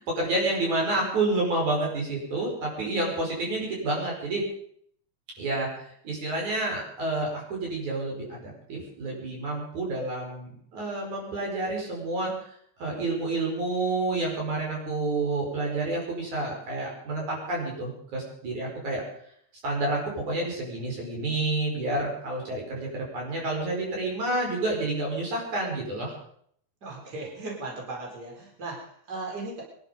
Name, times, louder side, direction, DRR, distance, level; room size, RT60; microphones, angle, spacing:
voice 1, 0.0-4.4 5.4-12.3 12.8-19.0 19.6-26.1, right 2 dB, 80° right, -1 dB, 6.8 m, -29 dB
voice 2, 26.8-29.6, right 2 dB, 30° right, -2 dB, 4.6 m, -37 dB
24.0 x 11.5 x 5.3 m, 0.64 s
omnidirectional pair, 3.3 m